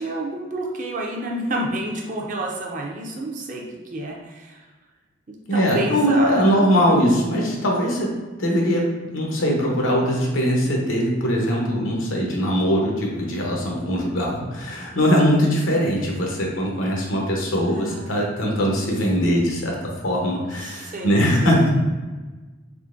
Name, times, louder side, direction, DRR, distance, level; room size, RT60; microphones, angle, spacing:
voice 1, 0.0-3.6 3.9-4.6 5.5-6.6 15.2-15.5 17.6-18.2 20.6-21.6, right 1 dB, 40° right, 0 dB, 0.5 m, -29 dB
voice 2, 5.5-8.1 8.4-21.7, equal, 90° left, -1 dB, 0.8 m, -21 dB
3.7 x 3.1 x 2.5 m, 1.3 s
head